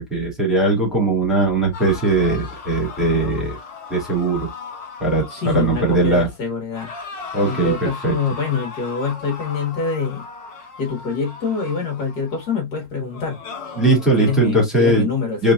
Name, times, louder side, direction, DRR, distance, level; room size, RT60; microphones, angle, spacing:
voice 1, 0.0-3.6 3.9-4.5 5.0-6.3 7.3-8.2 13.8-15.1 15.4-15.5, right 2 dB, ahead, 2.4 m, -19 dB
sound 1, 1.7-6.4 6.7-12.6 13.1-14.5, left 5 dB, 75° left, 2.4 m, -37 dB
voice 2, 5.3-6.9 7.4-10.2 10.8-13.4 14.2-15.5, left 5 dB, 60° left, 2.3 m, -25 dB
5.1 x 3.6 x 2.5 m
omnidirectional pair, 2.0 m